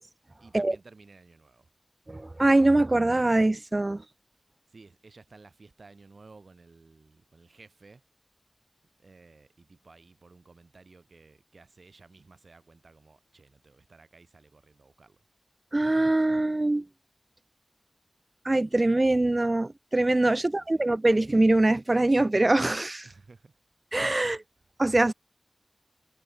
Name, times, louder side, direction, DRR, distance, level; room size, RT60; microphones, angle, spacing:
voice 1, 0.4-1.7 4.7-8.0 9.0-15.2 20.3-20.8 23.0-23.6 24.2-24.5, right 3 dB, 85° right, 3.0 m, -55 dB
voice 2, 2.1-4.0 15.7-16.9 18.5-23.1 23.9-24.4 24.8-25.1, right 2 dB, 40° right, 0.3 m, -23 dB
wide cardioid pair, 50°, 0 cm